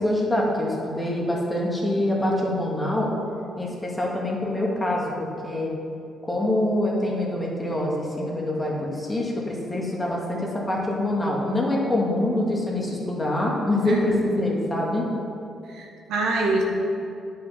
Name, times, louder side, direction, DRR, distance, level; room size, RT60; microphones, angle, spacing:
voice 1, 0.0-3.1 3.6-5.7 6.2-15.1, left 1 dB, 15° left, -3 dB, 2.1 m, -25 dB
voice 2, 15.7-16.6, right 3 dB, 85° right, -1 dB, 1.6 m, -25 dB
9.4 x 5.9 x 5.8 m, 2.6 s
cardioid pair, 90°, 0 cm